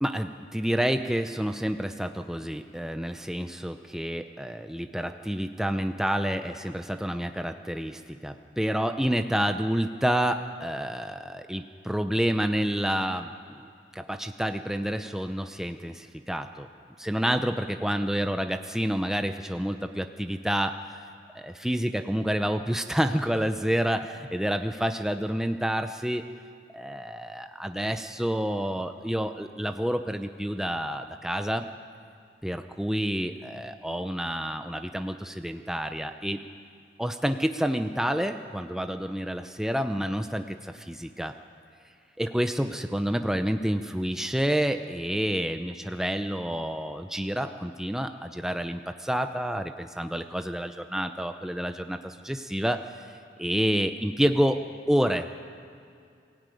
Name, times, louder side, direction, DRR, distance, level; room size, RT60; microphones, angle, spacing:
voice 1, 0.0-13.6 13.9-16.7 17.0-20.7 21.3-26.3 26.7-31.7 32.4-36.4 37.0-41.3 42.2-52.8 53.4-54.6 54.9-55.3, equal, 5° right, 7 dB, 0.6 m, -29 dB
22.5 x 16.0 x 9.2 m, 2.4 s
head